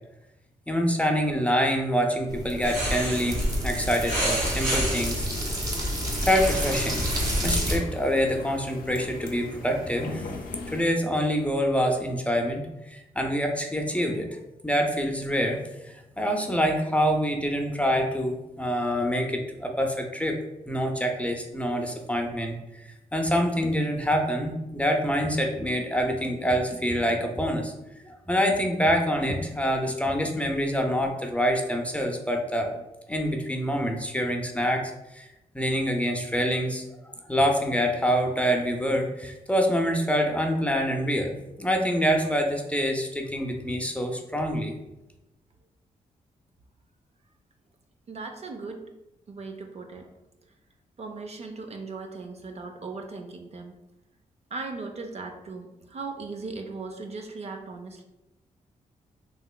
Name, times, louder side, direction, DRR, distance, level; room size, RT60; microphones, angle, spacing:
voice 1, 0.7-5.3 6.2-7.1 7.4-10.3 10.7-14.3 14.6-15.6 15.9-20.4 20.7-22.6 22.8-27.7 28.3-32.7 33.1-35.3 35.5-36.8 37.3-41.3 41.6-44.7, equal, 10° left, 3 dB, 0.5 m, -26 dB
sound 1, 2.3-7.8, right 1 dB, 25° right, 0.9 m, -32 dB
sound 2, 2.6-7.8, equal, 90° right, 1.1 m, -29 dB
sound 3, 2.8-10.8, left 3 dB, 75° left, 0.4 m, -40 dB
voice 2, 48.1-48.8 49.3-50.1 51.0-53.8 54.5-58.1, right 3 dB, 45° right, 4 dB, 0.4 m, -38 dB
3.1 x 2.9 x 2.2 m, 0.94 s
supercardioid pair, 50°, 15 cm